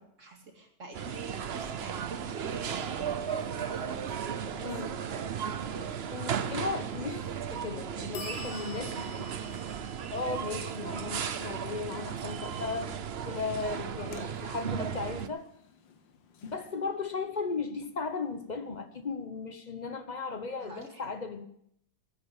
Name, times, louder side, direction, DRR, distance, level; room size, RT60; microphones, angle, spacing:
voice 1, 0.0-6.5 20.6-21.1, right 3 dB, 40° right, 2 dB, 2.6 m, -46 dB
sound 1, 0.9-15.3, right 8 dB, 60° right, 0.6 m, -35 dB
sound 2, 1.0-4.7 8.1-18.8, left 4 dB, 85° left, 1.8 m, -52 dB
voice 2, 6.1-7.3 7.5-9.3 10.1-13.0 13.2-15.5 16.4-21.5, left 4 dB, 40° left, 8 dB, 0.6 m, -36 dB
14.0 x 9.3 x 7.2 m, 0.73 s
omnidirectional pair, 2.0 m